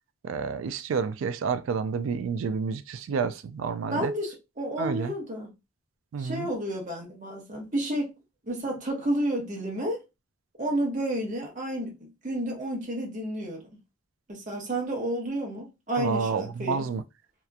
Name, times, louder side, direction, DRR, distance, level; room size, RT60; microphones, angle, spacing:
voice 1, 0.2-4.1 4.8-5.1 6.1-6.5 16.0-17.0, right 5 dB, 80° right, 0.3 m, -29 dB
voice 2, 3.9-5.5 6.2-8.1 8.5-10.0 10.6-13.6 14.3-16.9, right 1 dB, 40° right, 0.9 m, -31 dB
2.8 x 2.4 x 2.2 m
head